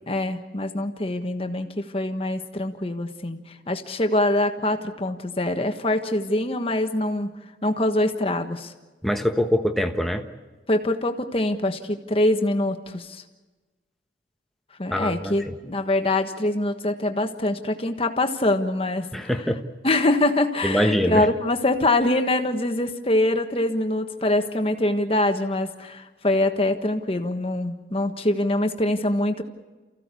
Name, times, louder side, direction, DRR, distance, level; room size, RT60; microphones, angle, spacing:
voice 1, 0.1-7.3 7.6-8.7 10.7-13.2 14.8-19.3 19.8-29.4, left 1 dB, 35° left, 6 dB, 1.4 m, -24 dB
voice 2, 9.0-10.2 14.9-15.4 19.1-19.6 20.6-21.3, equal, ahead, 4 dB, 1.4 m, -23 dB
29.5 x 15.5 x 8.4 m, 1.2 s
head